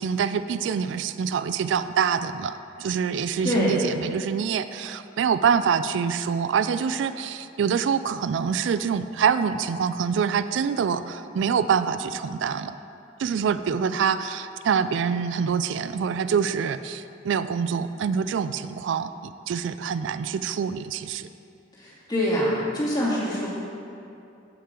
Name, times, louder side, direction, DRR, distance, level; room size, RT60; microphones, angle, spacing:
voice 1, 0.0-12.8 13.2-21.3, right 6 dB, 65° right, 13 dB, 0.3 m, -25 dB
voice 2, 21.8-23.5, left 1 dB, 20° left, -7 dB, 2.3 m, -25 dB
15.0 x 5.6 x 3.7 m, 2.6 s
head